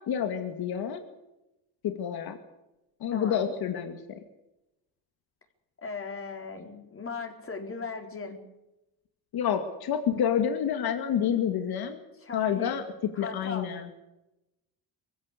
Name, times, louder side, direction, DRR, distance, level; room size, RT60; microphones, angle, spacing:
voice 1, 0.1-1.0 1.8-2.4 3.0-4.2 9.3-12.0 12.3-12.8 13.2-13.9, left 8 dB, 80° left, 7 dB, 2.3 m, -28 dB
voice 2, 3.1-3.5 5.8-8.4 12.2-12.8 13.1-13.7, left 4 dB, 35° left, 4 dB, 4.3 m, -38 dB
23.5 x 16.0 x 8.4 m, 0.94 s
cardioid pair, 120°, 37 cm